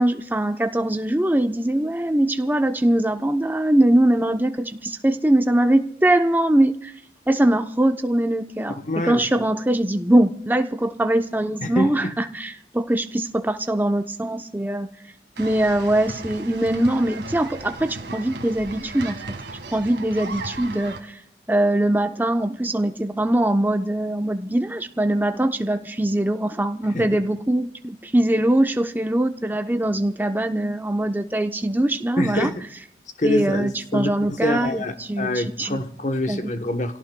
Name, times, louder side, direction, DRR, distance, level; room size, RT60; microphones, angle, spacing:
voice 1, 0.0-6.9 7.3-8.7 9.0-14.9 15.4-19.2 19.7-21.1 21.5-32.5 33.2-35.8 36.3-36.4, right 1 dB, 10° right, 0.7 m, -22 dB
voice 2, 8.7-9.5 11.6-12.1 26.9-27.2 32.2-32.7 33.2-37.0, left 1 dB, 45° left, 0.9 m, -26 dB
sound 1, 15.4-21.0, right 3 dB, 80° right, 1.6 m, -36 dB
29.0 x 17.5 x 2.2 m
head